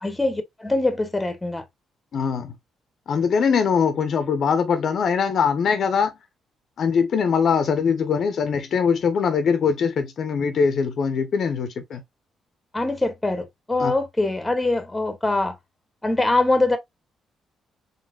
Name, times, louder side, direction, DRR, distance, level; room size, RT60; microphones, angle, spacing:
voice 1, 0.0-1.6 12.7-15.6 16.0-16.8, left 2 dB, 15° left, 0.9 m, -23 dB
voice 2, 2.1-2.5 3.1-6.1 6.8-12.0 13.8-13.9, left 6 dB, 60° left, 0.6 m, -22 dB
4.0 x 3.4 x 2.2 m
cardioid pair, 90°, 0 cm